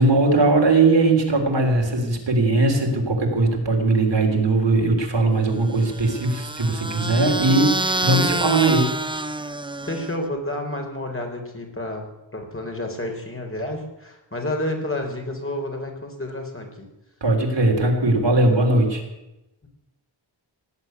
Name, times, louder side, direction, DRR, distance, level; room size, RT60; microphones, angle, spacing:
voice 1, 0.0-8.9 17.2-19.0, right 2 dB, 65° right, 2 dB, 3.7 m, -19 dB
sound 1, 5.7-10.3, right 2 dB, 10° right, 0.7 m, -27 dB
voice 2, 9.9-12.1 12.3-16.9, left 1 dB, 30° left, 2 dB, 3.6 m, -30 dB
18.0 x 8.2 x 9.4 m, 0.95 s
wide cardioid pair, 100°, 46 cm